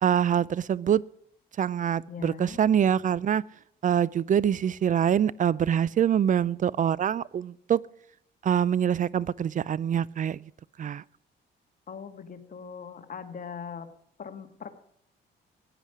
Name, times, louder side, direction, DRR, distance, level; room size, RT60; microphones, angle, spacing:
voice 1, 0.0-1.0 1.6-3.4 3.8-7.8 8.4-10.4 10.8-11.0, right 9 dB, 40° right, 23 dB, 0.4 m, -25 dB
voice 2, 2.1-2.6 11.9-13.9 14.2-14.7, left 6 dB, 45° left, 7 dB, 1.7 m, -40 dB
15.0 x 9.9 x 4.9 m, 0.71 s
cardioid pair, 90°, 20 cm